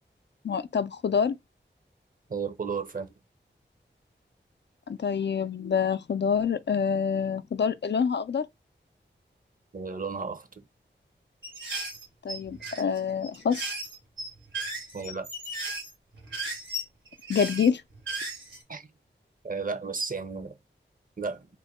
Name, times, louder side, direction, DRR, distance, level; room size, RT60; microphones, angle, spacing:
voice 1, 0.4-1.4 4.9-8.5 12.2-13.6 17.3-17.8, left 6 dB, 65° left, 0.4 m, -26 dB
voice 2, 2.3-3.1 9.7-10.6 14.9-15.3 18.7-18.9 19.4-20.6 21.2-21.5, right 5 dB, 45° right, 0.8 m, -33 dB
sound 1, 11.4-18.6, right 2 dB, 85° right, 2.4 m, -36 dB
3.6 x 2.1 x 4.1 m
cardioid pair, 40°, 19 cm